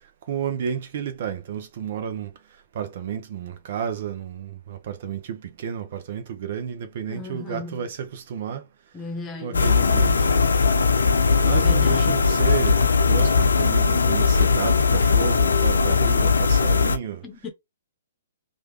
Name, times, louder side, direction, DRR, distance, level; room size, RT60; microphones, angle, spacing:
voice 1, 0.3-2.3 2.7-8.7 9.4-10.5 11.4-17.2, right 8 dB, 50° right, 0.7 m, -31 dB
voice 2, 7.1-7.9 8.9-9.8 11.5-12.2 17.2-17.5, left 3 dB, 20° left, 1.0 m, -36 dB
sound 1, 9.5-17.0, left 5 dB, 75° left, 0.5 m, -19 dB
3.1 x 2.5 x 2.9 m
figure-of-eight pair, 125°, 0 cm